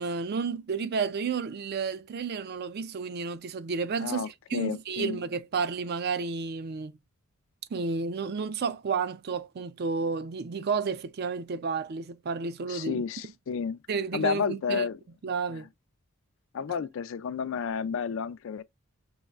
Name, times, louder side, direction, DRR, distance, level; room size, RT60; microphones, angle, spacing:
voice 1, 0.0-6.9 7.7-13.0 13.9-14.9 15.2-15.7, right 5 dB, 45° right, 0.4 m, -31 dB
voice 2, 4.0-5.2 12.7-13.8 14.1-15.0 15.5-15.6 16.5-18.6, left 6 dB, 60° left, 0.4 m, -31 dB
5.4 x 3.1 x 2.4 m
head